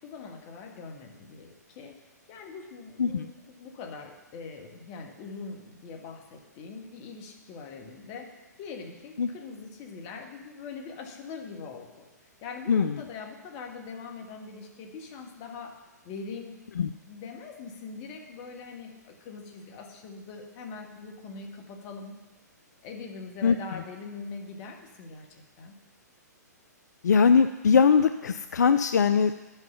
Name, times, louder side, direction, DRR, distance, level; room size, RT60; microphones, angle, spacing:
voice 1, 0.0-2.0 2.3-12.1 12.4-16.6 17.1-22.2 22.8-25.7, left 4 dB, 35° left, 3 dB, 1.5 m, -42 dB
voice 2, 27.0-29.3, left 6 dB, 70° left, 11 dB, 0.4 m, -21 dB
11.5 x 5.7 x 5.6 m, 1.2 s
figure-of-eight pair, 120°, 10 cm